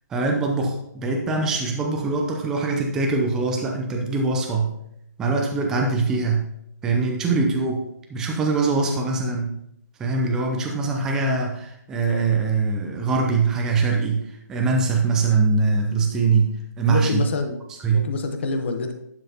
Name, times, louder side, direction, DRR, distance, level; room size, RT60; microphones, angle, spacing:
voice 1, 0.1-4.7 5.2-6.5 6.8-7.8 8.1-9.6 10.0-17.3 17.8-18.1, right 4 dB, 5° right, 1 dB, 0.5 m, -23 dB
voice 2, 7.3-7.6 8.8-9.0 16.9-17.6 17.9-18.9, left 3 dB, 35° left, 5 dB, 1.0 m, -26 dB
10.5 x 5.9 x 2.8 m, 0.77 s
hypercardioid pair, 165°, 10 cm